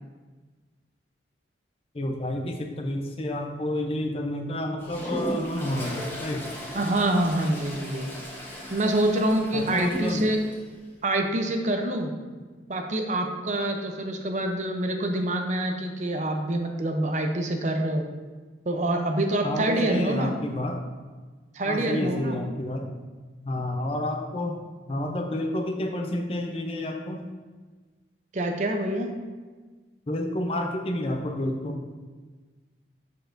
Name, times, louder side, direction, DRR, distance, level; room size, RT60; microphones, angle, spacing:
voice 1, 1.9-6.5 9.5-10.3 19.4-20.8 21.6-23.0 23.4-24.6 24.9-27.3 30.1-31.8, left 1 dB, 30° left, 3 dB, 0.6 m, -30 dB
Toilet flush, 4.8-10.6, equal, 15° left, 1.0 m, -36 dB
voice 2, 6.7-8.1 8.7-10.4 11.0-12.1 12.7-18.0 18.7-20.3 21.5-22.4 28.3-29.1, right 1 dB, 40° right, 4 dB, 0.6 m, -26 dB
6.9 x 6.3 x 2.6 m, 1.4 s
head